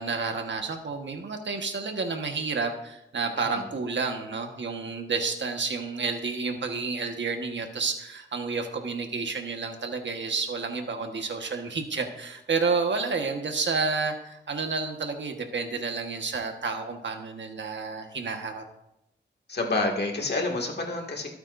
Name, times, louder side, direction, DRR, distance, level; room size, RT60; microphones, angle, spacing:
voice 1, 0.0-18.6, right 4 dB, 70° right, 4 dB, 1.4 m, -30 dB
voice 2, 3.4-3.7 19.5-21.3, left 2 dB, 60° left, 1 dB, 2.2 m, -28 dB
25.0 x 8.9 x 2.6 m, 0.84 s
wide cardioid pair, 125°, 19 cm